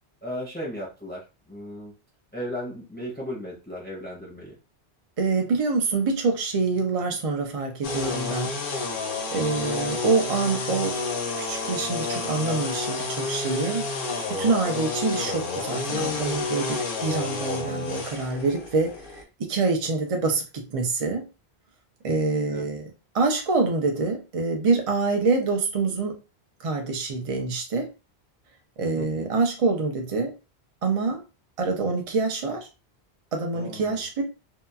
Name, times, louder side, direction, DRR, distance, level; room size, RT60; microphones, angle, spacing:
voice 1, 0.2-1.9 2.3-4.5 22.5-22.7 29.0-29.3 33.5-34.0, equal, 10° left, -2 dB, 0.7 m, -36 dB
voice 2, 5.2-8.6 9.3-11.0 11.4-21.3 22.0-26.1 26.6-27.9 28.8-30.3 30.8-31.2 31.6-32.7 33.3-34.2, right 3 dB, 45° right, 2 dB, 0.5 m, -26 dB
sound 1, 7.8-19.2, left 3 dB, 60° left, 0.8 m, -30 dB
2.8 x 2.3 x 2.3 m, 0.29 s
omnidirectional pair, 1.1 m